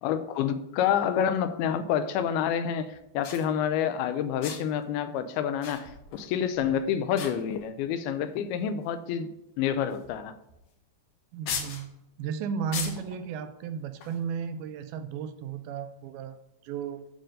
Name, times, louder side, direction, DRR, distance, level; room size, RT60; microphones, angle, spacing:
voice 1, 0.0-9.3 9.6-10.4, left 8 dB, 85° left, 2.5 m, -28 dB
sound 1, 1.8-1.9 2.9-3.0 3.2-3.5 4.4-4.8 5.6-6.3 6.6-6.8 7.2-7.8 8.6-8.7 9.9-10.2 10.5-10.6 11.5-11.9 12.7-13.2 14.0-14.2, left 6 dB, 65° left, 2.4 m, -37 dB
voice 2, 11.3-16.4 16.6-17.1, right 7 dB, 80° right, 2.3 m, -34 dB
9.2 x 3.8 x 6.4 m
omnidirectional pair, 4.5 m